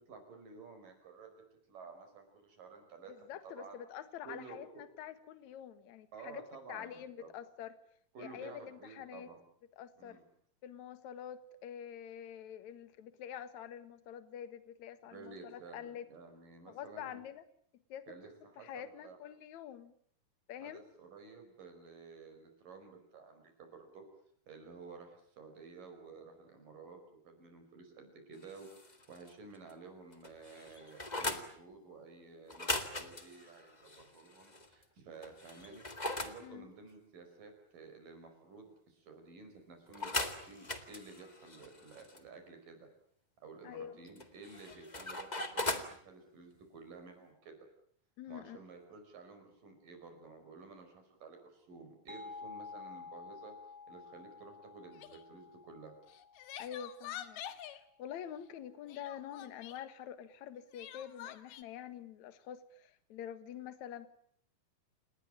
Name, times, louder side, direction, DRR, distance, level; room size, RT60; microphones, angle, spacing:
voice 1, 0.1-1.4 1.7-3.1 3.4-3.8 4.2-4.6 6.1-7.3 8.1-9.4 10.0-10.2 15.1-17.2 18.1-19.2 20.6-24.0 24.5-35.8 36.2-42.9 43.4-47.6 48.3-53.5 53.9-55.9, right 4 dB, 60° right, 5 dB, 6.6 m, -53 dB
voice 2, 3.1-6.4 6.7-7.8 8.2-9.3 9.8-10.2 10.6-16.1 16.7-17.4 17.9-18.1 18.6-19.9 20.5-20.8 36.4-36.7 43.6-44.0 48.2-48.6 56.6-57.4 58.0-64.1, left 9 dB, 60° left, 12 dB, 2.6 m, -46 dB
sound 1, 28.4-29.3 29.7-29.8 30.1-31.5 32.5-34.7 35.2-36.4 39.9-42.2 44.2-45.9, left 2 dB, 25° left, 0.9 m, -39 dB
sound 2, 52.1-57.5, left 4 dB, 25° right, 1.5 m, -51 dB
Crying sobbing, 54.9-55.2 56.1-57.8 58.9-59.8 60.7-61.6, left 11 dB, 90° left, 3.4 m, -47 dB
29.0 x 19.5 x 8.9 m, 0.64 s
omnidirectional pair, 4.3 m